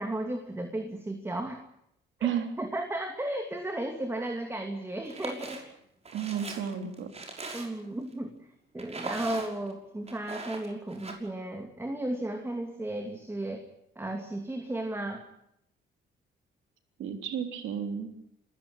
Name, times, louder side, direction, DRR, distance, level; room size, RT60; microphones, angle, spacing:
voice 1, 0.0-1.6 2.2-2.3 2.6-5.6 7.5-8.3 8.7-13.7 14.0-15.2, right 1 dB, 10° right, 5 dB, 2.7 m, -34 dB
sound 1, 5.0-5.6 6.0-7.9 8.8-9.7 10.1-11.1, right 3 dB, 30° right, 5.9 m, -40 dB
voice 2, 6.1-7.1 17.0-18.1, right 8 dB, 80° right, 5 dB, 3.5 m, -32 dB
27.0 x 15.0 x 8.8 m, 0.76 s
cardioid pair, 90°, 20 cm